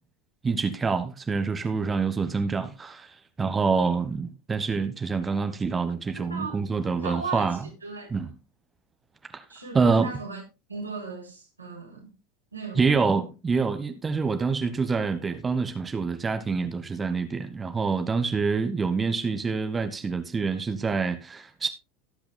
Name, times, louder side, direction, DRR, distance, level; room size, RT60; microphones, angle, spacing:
voice 1, 0.4-7.6 8.1-8.3 9.3-9.4 9.7-10.1 12.7-21.7, right 4 dB, 20° right, 1.1 m, -26 dB
voice 2, 6.2-6.6 7.0-8.2 9.5-10.4 10.7-12.1 12.5-12.9, right 4 dB, 85° right, 4.2 m, -37 dB
18.0 x 8.5 x 2.2 m
figure-of-eight pair, 80°, 0 cm